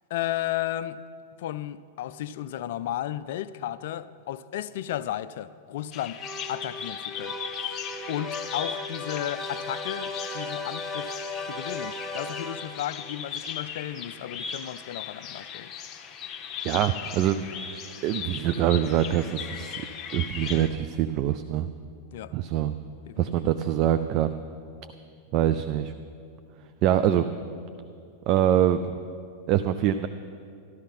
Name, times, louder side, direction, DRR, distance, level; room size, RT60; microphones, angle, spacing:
voice 1, 0.1-1.0 1.4-6.2 6.5-7.4 7.7-7.8 8.1-11.1 11.5-15.7 22.1-22.3 23.1-23.5, left 12 dB, 55° left, 0.4 m, -34 dB
Bird vocalization bird call bird song, 5.9-20.7, left 7 dB, 30° left, 0.9 m, -38 dB
sound 1, 6.2-13.0, left 2 dB, 5° left, 1.0 m, -36 dB
voice 2, 16.6-17.5 18.0-19.8 20.1-21.7 22.3-22.7 23.2-24.4 25.3-25.9 26.8-27.3 28.3-28.9 29.5-30.1, right 11 dB, 40° right, 0.4 m, -24 dB
13.0 x 13.0 x 5.5 m
figure-of-eight pair, 90°, 0 cm